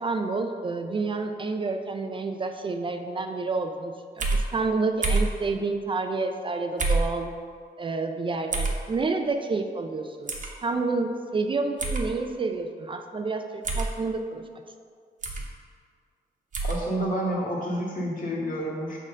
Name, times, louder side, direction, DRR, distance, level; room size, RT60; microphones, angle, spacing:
voice 1, 0.0-7.4 7.8-14.4, right 3 dB, 30° right, 6 dB, 0.4 m, -29 dB
sound 1, 4.2-4.4 5.0-5.3 6.8-7.1 8.5-8.8 10.3-10.5 11.8-12.0 13.6-13.9 15.2-15.5 16.5-16.8, right 3 dB, 50° right, 1.0 m, -25 dB
voice 2, 16.6-19.0, right 1 dB, 55° left, -4 dB, 1.8 m, -29 dB
6.6 x 3.7 x 6.2 m, 2.1 s
cardioid pair, 115°, 17 cm